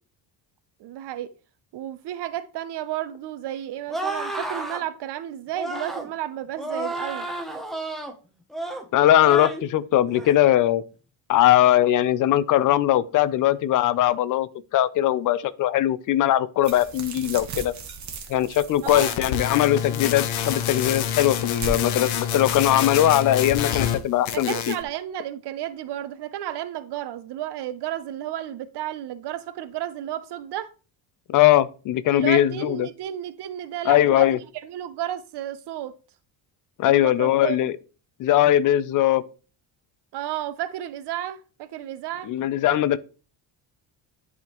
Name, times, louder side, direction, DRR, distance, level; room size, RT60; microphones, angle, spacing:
voice 1, 0.8-1.3 1.7-7.3 18.8-19.2 24.3-30.7 32.1-35.9 36.8-37.7 40.1-42.3, right 12 dB, 60° right, 0.6 m, -32 dB
sound 1, 3.9-4.8 5.5-6.1 6.6-8.1 8.5-8.9 9.2-9.6 10.1-10.4, right 2 dB, ahead, 0.7 m, -31 dB
voice 2, 8.9-10.8 11.3-17.7 18.3-24.8 31.3-32.9 33.9-34.4 36.8-37.7 38.2-39.2 42.2-43.0, left 13 dB, 45° left, 0.4 m, -20 dB
sound 2, 16.6-23.1, right 4 dB, 40° right, 1.0 m, -39 dB
sound 3, 18.9-24.0 24.3-24.8, left 9 dB, 80° left, 0.9 m, -27 dB
10.5 x 3.6 x 3.0 m
cardioid pair, 145°, 46 cm